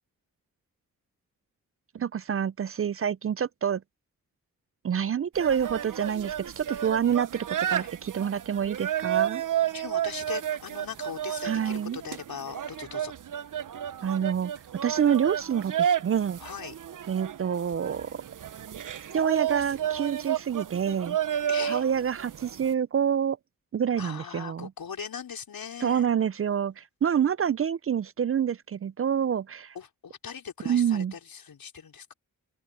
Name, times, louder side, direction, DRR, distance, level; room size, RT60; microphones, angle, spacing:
voice 1, 1.9-3.8 4.8-9.4 11.4-12.0 14.0-14.5 14.8-16.4 17.1-18.2 19.1-21.2 21.7-23.4 23.7-24.7 25.8-29.7 30.7-31.1, right 8 dB, 40° right, 0.4 m, -27 dB
sound 1, 5.4-22.7, right 10 dB, 60° right, 0.8 m, -32 dB
voice 2, 9.7-13.2 16.4-16.8 21.5-21.8 24.0-26.1 29.7-32.1, left 7 dB, 75° left, 4.1 m, -39 dB
open air
cardioid pair, 50°, 35 cm